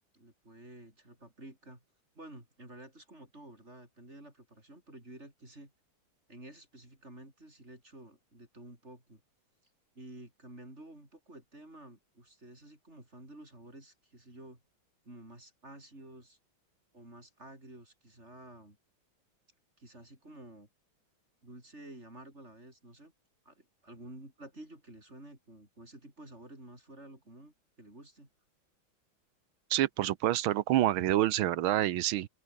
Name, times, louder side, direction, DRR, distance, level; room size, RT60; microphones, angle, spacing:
voice 1, 0.1-1.8 2.1-5.7 6.3-9.2 9.9-14.6 15.0-16.4 16.9-18.8 19.8-20.7 21.4-23.1 23.4-28.3, right 1 dB, 30° right, 7.9 m, -51 dB
voice 2, 29.7-32.3, right 13 dB, 85° right, 1.7 m, -27 dB
open air
omnidirectional pair, 2.2 m